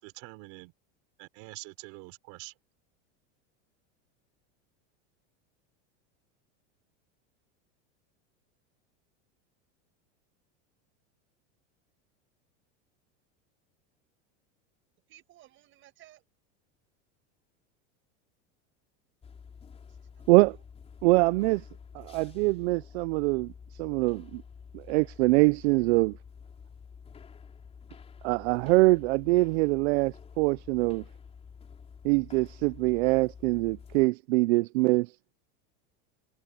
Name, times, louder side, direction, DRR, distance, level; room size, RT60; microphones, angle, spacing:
voice 1, 0.0-0.7 1.2-2.5, right 25 dB, 50° right, 4.7 m, -45 dB
voice 2, 15.1-16.2 19.9-20.6 21.4-21.5, right 14 dB, 35° right, 7.2 m, -58 dB
sound 1, 19.2-34.1, left 6 dB, 15° left, 4.2 m, -49 dB
voice 3, 21.0-21.6 21.9-23.5 23.8-24.4 24.7-26.1 28.2-31.0 32.0-35.1, right 23 dB, 70° right, 0.5 m, -24 dB
supercardioid pair, 160°, 35 cm